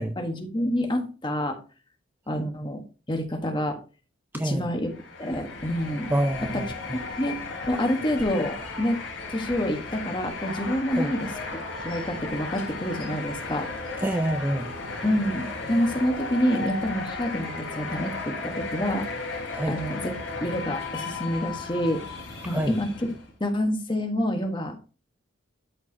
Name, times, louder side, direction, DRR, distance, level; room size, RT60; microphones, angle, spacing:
voice 1, 0.2-1.6 2.3-2.8 3.1-3.8 4.4-4.9 5.2-6.1 6.5-6.6 6.9-7.4 7.7-9.0 9.3-11.3 11.8-13.7 15.0-19.1 19.7-22.0 22.4-23.1 23.4-24.7, equal, 25° left, 1.3 m, -27 dB
sound 1, 4.8-23.3, left 3 dB, 80° left, 3.5 m, -35 dB
voice 2, 6.1-7.0 10.9-11.1 14.0-14.7 19.5-19.8 22.5-22.8, right 1 dB, 10° right, 0.3 m, -27 dB
12.5 x 4.8 x 2.8 m
head